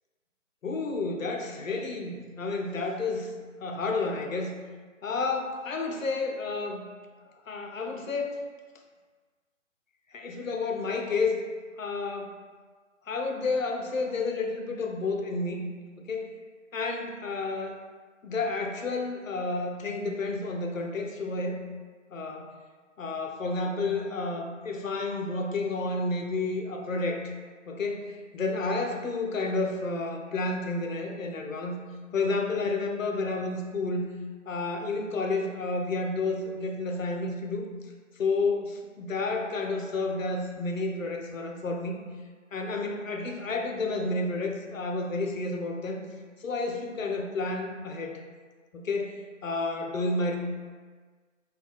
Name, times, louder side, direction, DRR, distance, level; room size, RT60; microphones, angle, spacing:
voice 1, 0.6-3.3 3.6-4.5 5.0-6.9 7.5-8.4 10.1-11.4 11.8-12.4 13.1-15.6 16.0-16.4 16.7-17.8 18.2-21.6 22.1-22.5 23.0-27.3 27.7-31.8 32.1-34.1 34.5-37.7 38.2-42.0 42.5-46.0 46.4-48.2 48.7-50.4, left 3 dB, 85° left, 3 dB, 0.5 m, -30 dB
2.2 x 2.2 x 3.1 m, 1.5 s
figure-of-eight pair, 140°, 39 cm